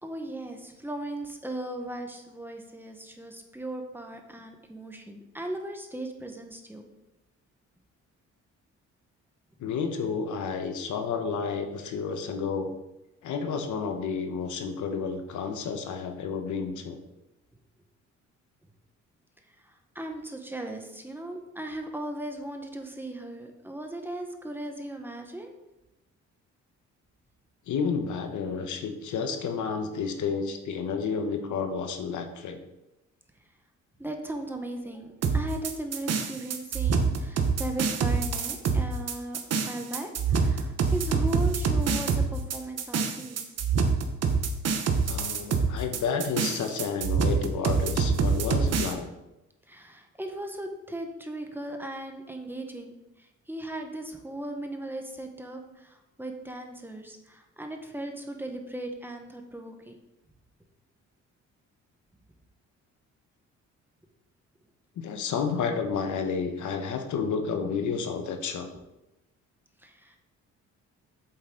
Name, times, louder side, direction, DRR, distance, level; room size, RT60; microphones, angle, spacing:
voice 1, 0.0-6.9 19.9-25.5 34.0-39.4 39.6-43.4 49.7-53.0 53.5-60.0 69.8-70.1, right 1 dB, 5° right, 3 dB, 1.3 m, -37 dB
voice 2, 9.6-12.7 13.2-17.0 27.7-32.6 45.0-49.1 65.0-68.7, left 5 dB, 75° left, 6 dB, 1.2 m, -31 dB
sound 1, 35.2-48.9, right 5 dB, 55° right, 1.2 m, -26 dB
8.0 x 7.9 x 4.0 m, 0.93 s
cardioid pair, 90°, 30 cm